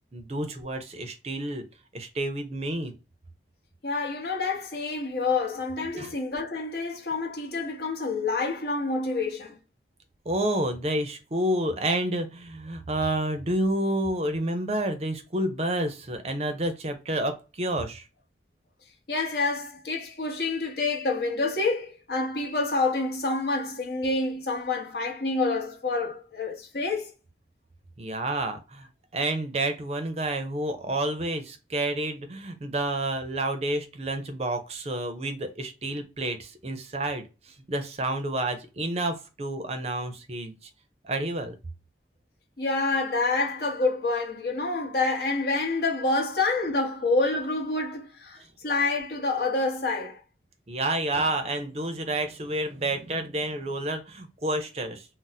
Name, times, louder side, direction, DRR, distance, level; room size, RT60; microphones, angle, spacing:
voice 1, 0.1-1.6 1.9-2.9 5.9-6.1 10.3-18.1 28.0-28.9 29.1-37.3 37.7-40.6 41.0-41.6 50.7-55.1, right 1 dB, 35° right, 0.5 m, -29 dB
voice 2, 3.8-9.6 19.1-27.1 42.6-50.2, left 3 dB, 60° left, 0.8 m, -27 dB
2.5 x 2.0 x 3.9 m
head